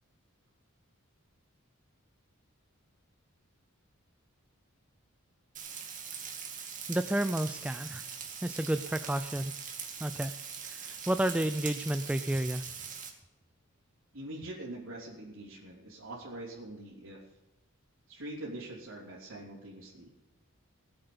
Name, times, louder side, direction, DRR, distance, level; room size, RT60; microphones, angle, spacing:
Frying (food), 5.5-13.1, right 7 dB, 35° right, 2.1 m, -42 dB
voice 1, 6.9-8.0 8.4-9.5 10.0-10.3 10.6-12.6, right 1 dB, 5° right, 10 dB, 0.4 m, -31 dB
voice 2, 14.1-17.2 18.1-20.1, right 1 dB, 65° right, -7 dB, 3.4 m, -43 dB
18.5 x 7.9 x 6.9 m, 1.0 s
head